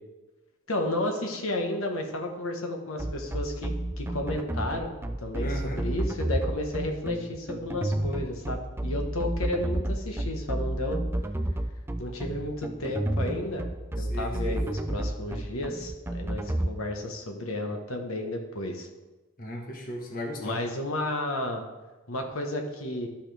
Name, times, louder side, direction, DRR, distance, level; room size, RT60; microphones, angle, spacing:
voice 1, 0.7-3.7 4.0-11.0 12.0-13.6 14.0-18.9 20.4-21.6 22.1-23.1, left 1 dB, 80° left, 3 dB, 1.3 m, -32 dB
sound 1, 3.0-16.7, right 1 dB, 10° right, 0.3 m, -30 dB
voice 2, 5.4-5.8 14.0-14.6 19.4-20.6, equal, 40° left, 1 dB, 1.2 m, -36 dB
12.5 x 5.7 x 3.4 m, 1.1 s
head